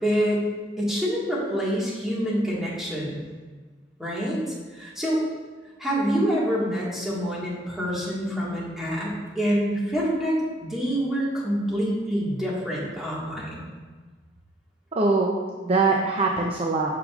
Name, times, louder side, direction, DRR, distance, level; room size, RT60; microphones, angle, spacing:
voice 1, 0.0-0.4 0.8-3.3 4.0-4.4 4.7-5.2 5.8-13.6, equal, ahead, -7 dB, 1.7 m, -26 dB
voice 2, 14.9-16.9, right 3 dB, 35° right, -2 dB, 0.6 m, -23 dB
8.3 x 6.7 x 2.5 m, 1.4 s
head